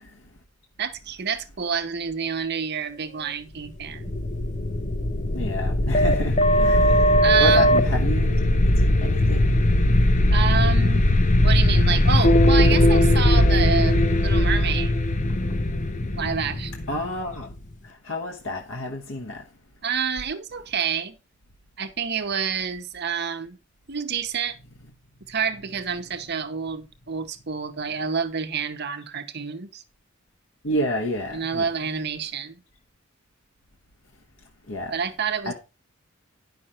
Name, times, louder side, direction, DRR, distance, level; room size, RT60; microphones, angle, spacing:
voice 1, 0.8-4.1 7.0-7.7 10.3-11.1 11.4-15.0 16.2-16.7 19.8-21.2 21.8-23.6 23.9-24.6 25.3-29.8 31.3-32.6 34.9-35.5, right 7 dB, 55° right, 1.0 m, -28 dB
sound 1, 3.9-17.6, left 1 dB, 40° left, 0.7 m, -19 dB
voice 2, 5.3-8.4 8.9-9.5 16.9-17.5 18.0-19.4 30.6-31.7 34.7-34.9 35.4-35.5, left 1 dB, 70° left, 1.2 m, -29 dB
10.0 x 5.9 x 4.4 m
head